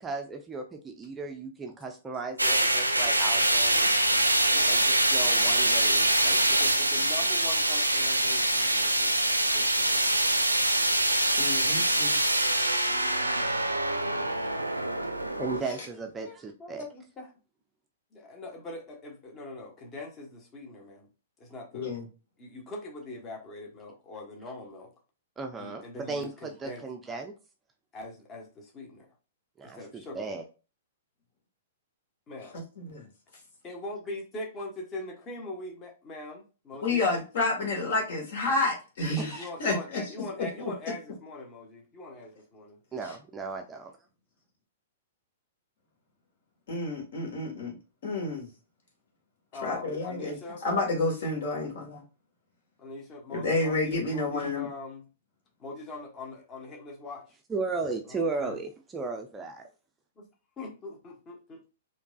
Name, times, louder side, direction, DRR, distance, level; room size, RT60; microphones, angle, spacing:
voice 1, 0.0-3.9 4.7-6.4 15.4-16.8 25.4-27.3 29.6-30.4 39.2-39.5 42.9-43.9 57.5-59.7, right 3 dB, 15° right, 4 dB, 0.4 m, -36 dB
sound 1, 2.4-15.6, right 1 dB, 90° right, 0.5 m, -24 dB
voice 2, 6.5-9.2 9.5-10.8 16.2-17.3 18.1-21.1 21.4-21.9 22.4-24.9 25.6-26.8 27.9-29.1 29.6-30.3 32.3-32.6 33.6-37.1 39.2-42.8 49.5-50.6 52.8-55.1 55.6-57.4 58.1-58.6 60.2-60.3 60.6-61.7, left 2 dB, 25° left, 0 dB, 1.1 m, -42 dB
voice 3, 11.4-12.2 21.7-22.0 32.8-33.1 36.8-40.0 40.4-40.7 46.7-47.7 48.0-48.5 49.6-50.4 50.6-52.0 53.3-54.7, left 3 dB, 55° left, 0 dB, 1.6 m, -29 dB
4.4 x 2.6 x 2.3 m, 0.33 s
figure-of-eight pair, 110°, 0 cm